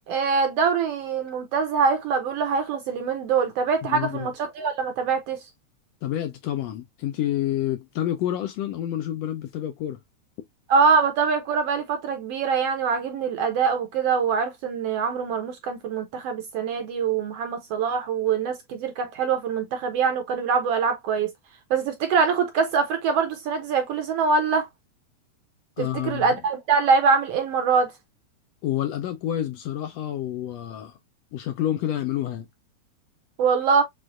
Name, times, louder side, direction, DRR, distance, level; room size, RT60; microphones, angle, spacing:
voice 1, 0.1-5.4 10.7-21.3 21.7-24.7 25.8-27.9 33.4-33.8, right 5 dB, 70° right, 1.6 m, -23 dB
voice 2, 3.8-4.3 6.0-10.0 25.8-26.4 28.6-31.0 31.3-32.5, left 12 dB, 75° left, 1.6 m, -28 dB
6.2 x 2.5 x 2.4 m
omnidirectional pair, 3.4 m